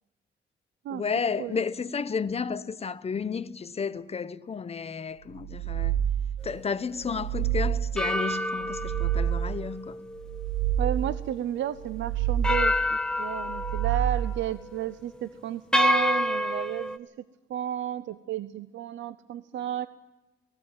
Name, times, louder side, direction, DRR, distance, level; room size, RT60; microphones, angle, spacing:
voice 1, 0.9-6.0 6.4-10.0, left 5 dB, 30° left, 0.9 m, -32 dB
sound 1, 5.3-6.4 6.9-8.0 8.5-9.6 10.1-11.2 11.7-12.8 13.3-14.4, right 10 dB, 40° right, 6.2 m, -28 dB
sound 2, 6.4-6.6 8.0-11.4 11.8-11.9 12.4-14.3 14.6-14.9 15.7-17.0, left 1 dB, 5° left, 1.1 m, -29 dB
voice 2, 10.8-17.1 17.5-19.9, right 11 dB, 70° right, 0.7 m, -32 dB
18.0 x 16.5 x 9.0 m
cardioid pair, 90°, 20 cm